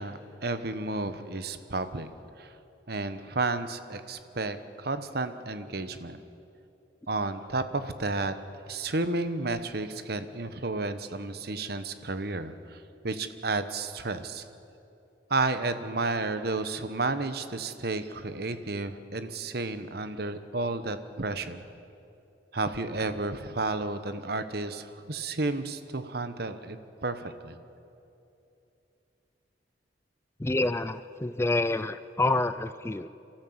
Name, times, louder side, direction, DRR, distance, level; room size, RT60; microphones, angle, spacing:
voice 1, 0.0-2.1 2.4-2.5 2.9-6.2 7.1-8.3 8.7-14.4 15.3-21.6 22.5-26.8 27.0-27.6, right 3 dB, 60° right, 11 dB, 1.1 m, -32 dB
voice 2, 30.4-33.1, left 2 dB, 15° left, 13 dB, 0.4 m, -28 dB
28.5 x 13.5 x 8.0 m, 2.8 s
head